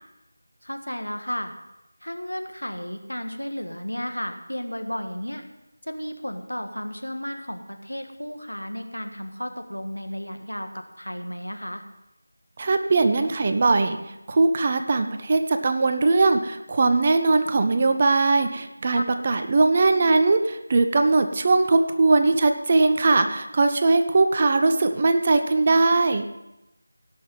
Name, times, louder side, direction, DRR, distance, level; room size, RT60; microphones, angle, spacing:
voice 1, 0.6-1.5 2.0-5.4 5.8-11.8 18.9-19.0, equal, 85° left, 6 dB, 1.6 m, -33 dB
voice 2, 12.6-14.0 14.3-26.3, right 3 dB, 30° right, 8 dB, 0.7 m, -20 dB
17.0 x 6.3 x 5.4 m, 0.93 s
figure-of-eight pair, 165°, 0 cm